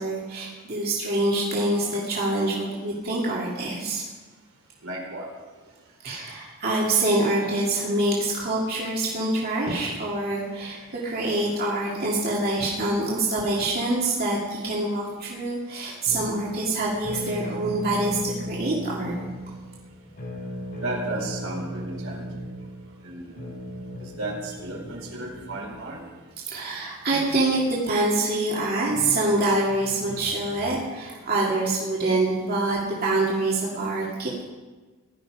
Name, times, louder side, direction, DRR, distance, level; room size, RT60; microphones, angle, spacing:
voice 1, 0.0-4.0 6.0-19.1 26.5-34.4, right 2 dB, 45° right, -5 dB, 2.7 m, -25 dB
voice 2, 4.8-5.3 13.4-13.8 20.8-22.3 23.0-23.5 24.0-26.0 27.1-27.4 28.9-29.3 29.7-30.3 31.0-31.2, right 2 dB, 75° right, -1 dB, 4.0 m, -35 dB
sound 1, 16.1-26.0, equal, 45° left, 4.1 m, -37 dB
17.5 x 12.5 x 5.1 m, 1.3 s
head